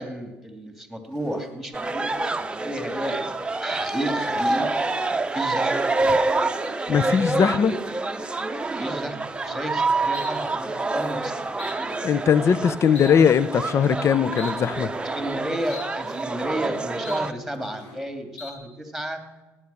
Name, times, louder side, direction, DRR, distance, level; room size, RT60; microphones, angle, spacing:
voice 1, 0.0-4.7 5.3-5.7 8.7-11.9 15.1-19.2, right 1 dB, ahead, 5 dB, 2.9 m, -32 dB
sound 1, 1.1-1.5 2.0-2.4 2.9-3.3 3.7-4.1 4.6-5.1 5.4-6.0 6.3-6.8 7.3-7.6 8.1-8.4 9.3-9.7 10.1-10.3 10.7-11.1 11.6-11.8 12.1-12.5 12.9-13.1 13.6-13.9 14.4-14.5 14.9-15.3 15.7-15.9 16.2-16.7 17.0-17.2 17.5-18.0 18.4-18.5, left 3 dB, 85° left, 2.9 m, -44 dB
sound 2, 1.7-17.3, right 3 dB, 15° right, 0.8 m, -27 dB
voice 2, 6.9-7.8 12.0-14.9, left 7 dB, 45° left, 18 dB, 0.7 m, -20 dB
17.0 x 9.9 x 7.1 m, 1.1 s
supercardioid pair, 80°, 6 cm